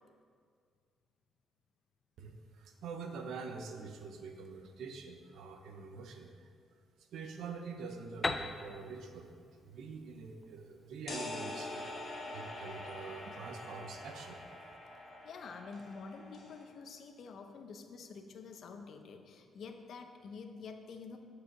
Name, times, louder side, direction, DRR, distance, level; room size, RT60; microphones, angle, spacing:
voice 1, 2.2-6.5 7.1-9.3 9.6-11.9 12.3-14.4, right 5 dB, 75° right, 5 dB, 0.9 m, -45 dB
Piano, 8.2-11.9, left 3 dB, 20° left, 0.5 m, -40 dB
sound 1, 11.1-16.6, left 2 dB, 50° left, 2.2 m, -45 dB
voice 2, 15.2-21.2, left 5 dB, 65° left, 6 dB, 0.8 m, -48 dB
9.5 x 5.0 x 6.0 m, 2.2 s
cardioid pair, 90°, 0 cm